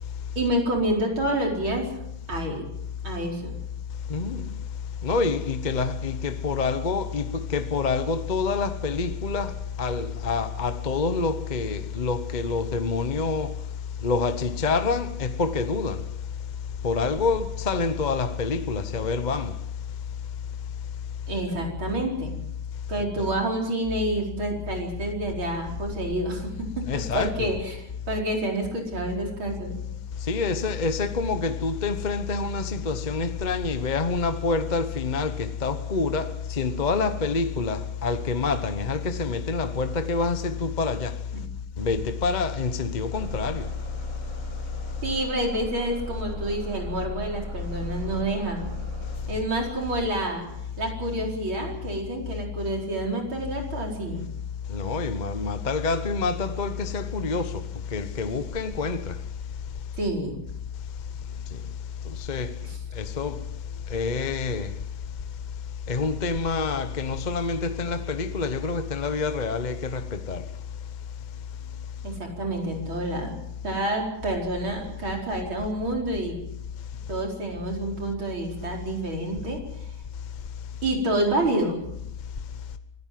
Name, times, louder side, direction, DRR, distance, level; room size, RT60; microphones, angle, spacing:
voice 1, 0.4-1.9 2.3-2.7 3.0-3.5 21.3-22.4 22.9-27.8 28.1-29.8 45.0-48.8 49.3-50.5 50.8-54.3 60.0-60.4 62.6-62.8 72.0-73.4 73.6-76.4 77.1-79.6 80.8-81.8, right 1 dB, 85° right, 5.3 m, -28 dB
voice 2, 4.1-4.5 5.0-9.5 9.8-13.6 14.0-16.0 16.8-19.5 26.9-27.6 30.3-41.2 41.8-43.7 49.3-49.4 54.7-57.6 57.9-59.1 62.3-62.5 63.0-63.4 63.9-64.7 65.9-70.4, left 4 dB, 30° left, 0.8 m, -27 dB
Bus / Engine starting, 43.1-50.9, right 1 dB, 40° right, 5.0 m, -38 dB
25.0 x 17.5 x 7.6 m
omnidirectional pair, 2.2 m